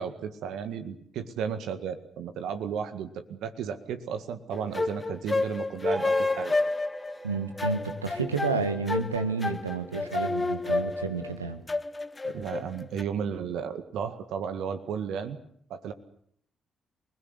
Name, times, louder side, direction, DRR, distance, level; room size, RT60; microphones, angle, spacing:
voice 1, 0.0-6.6 12.2-15.4 15.7-15.9, right 7 dB, 65° right, 9 dB, 1.9 m, -34 dB
sound 1, 4.5-13.0, left 3 dB, 25° left, 1.0 m, -30 dB
sound 2, 5.9-13.1, right 2 dB, 15° right, 4.2 m, -47 dB
voice 2, 7.2-11.6, right 4 dB, 85° right, 9 dB, 1.7 m, -30 dB
28.5 x 20.5 x 8.1 m, 0.66 s
figure-of-eight pair, 40°, 0 cm